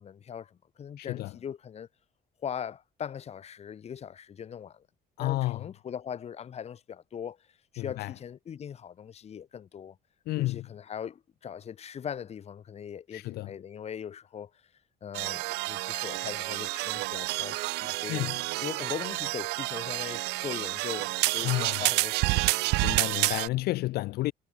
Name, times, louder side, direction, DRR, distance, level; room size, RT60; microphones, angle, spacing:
voice 1, 0.0-1.9 2.4-4.8 5.2-7.4 7.7-10.0 10.4-14.5 15.0-18.2 18.6-22.5, left 8 dB, 40° left, 1.0 m, -40 dB
voice 2, 1.0-1.3 5.2-5.6 7.8-8.1 10.3-10.7 13.1-13.5 18.1-18.3 21.4-21.8 22.8-24.3, left 18 dB, 70° left, 0.4 m, -31 dB
sound 1, 15.1-23.5, right 23 dB, 90° right, 0.4 m, -29 dB
cardioid pair, 110°, 17 cm